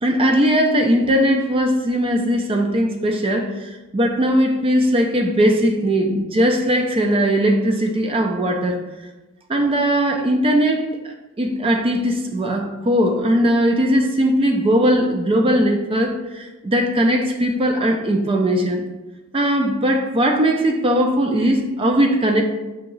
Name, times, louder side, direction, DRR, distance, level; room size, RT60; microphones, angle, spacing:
voice 1, 0.0-8.8 9.5-18.8 19.3-22.4, equal, 25° right, 3 dB, 0.4 m, -19 dB
4.9 x 2.8 x 3.8 m, 1.1 s
head